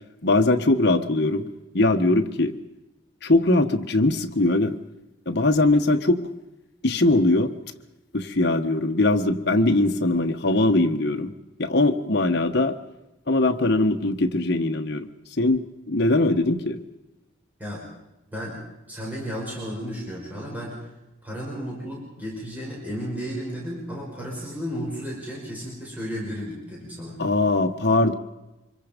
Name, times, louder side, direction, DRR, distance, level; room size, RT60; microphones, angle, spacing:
voice 1, 0.2-1.4 1.7-2.5 3.2-4.7 5.3-6.2 6.8-7.5 8.1-11.3 11.6-12.8 13.3-15.1 15.4-16.8 27.2-28.1, left 2 dB, 55° left, 5 dB, 1.3 m, -21 dB
voice 2, 18.9-20.8 21.2-27.2, equal, 10° right, -5 dB, 5.6 m, -33 dB
25.5 x 23.0 x 5.3 m, 0.96 s
head